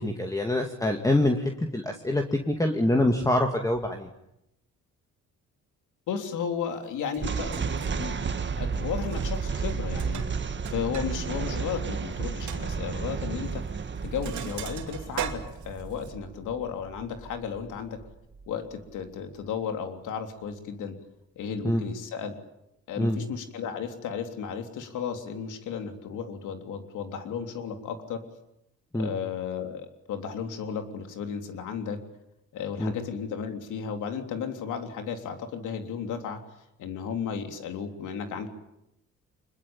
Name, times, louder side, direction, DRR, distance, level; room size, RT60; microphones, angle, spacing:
voice 1, 0.0-4.1 21.6-21.8 23.0-23.2 28.9-29.1 32.8-32.9, left 1 dB, 10° left, 3 dB, 2.4 m, -25 dB
voice 2, 6.1-8.2 8.6-18.0 18.5-21.0 21.4-22.3 22.9-28.2 28.9-32.0 32.5-36.4 36.8-38.5, left 7 dB, 85° left, 6 dB, 3.4 m, -34 dB
Sink (filling or washing), 7.1-7.2 7.5-8.1 9.0-9.4 9.7-11.1 11.4-11.5 11.9-12.0 12.5-12.6 13.5-13.7 14.0-16.1, right 8 dB, 70° right, 2.8 m, -38 dB
sound 1, 7.2-18.5, right 5 dB, 40° right, 1.8 m, -32 dB
25.0 x 21.5 x 8.9 m, 0.84 s
cardioid pair, 90°, 30 cm